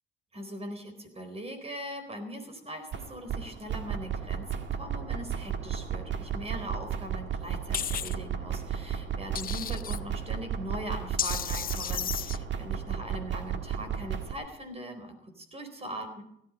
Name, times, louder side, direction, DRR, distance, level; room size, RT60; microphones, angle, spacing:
voice 1, 0.3-16.2, equal, 30° right, 7 dB, 4.2 m, -41 dB
sound 1, 2.9-14.3, right 8 dB, 65° right, 1.7 m, -34 dB
sound 2, 7.7-8.1 9.3-10.0 11.2-12.4, left 9 dB, 45° left, 0.6 m, -33 dB
17.0 x 13.0 x 5.3 m, 0.73 s
cardioid pair, 90°, 20 cm